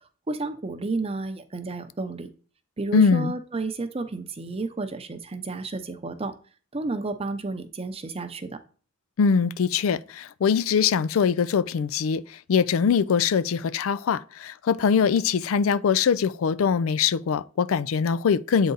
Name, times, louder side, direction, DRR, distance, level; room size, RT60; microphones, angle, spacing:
voice 1, 0.3-2.3 2.8-6.3 6.7-8.6, right 3 dB, 30° right, 0.6 m, -31 dB
voice 2, 2.9-3.3 9.2-18.7, left 6 dB, 90° left, 0.4 m, -22 dB
8.2 x 3.9 x 3.9 m
head